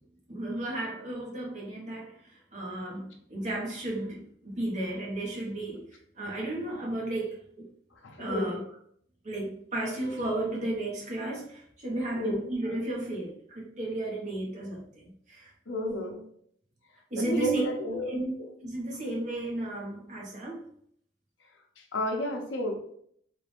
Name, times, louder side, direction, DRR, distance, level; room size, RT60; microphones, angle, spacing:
voice 1, 0.3-5.9 6.1-7.7 8.2-8.6 9.2-14.8 15.3-15.5 17.1-17.6 17.9-20.7, right 1 dB, 40° right, -3 dB, 1.1 m, -34 dB
voice 2, 8.0-8.5 12.2-12.5 15.7-16.2 17.1-18.0 18.3-18.5 21.8-22.9, equal, 80° left, 2 dB, 0.8 m, -32 dB
3.4 x 2.5 x 3.5 m, 0.64 s
head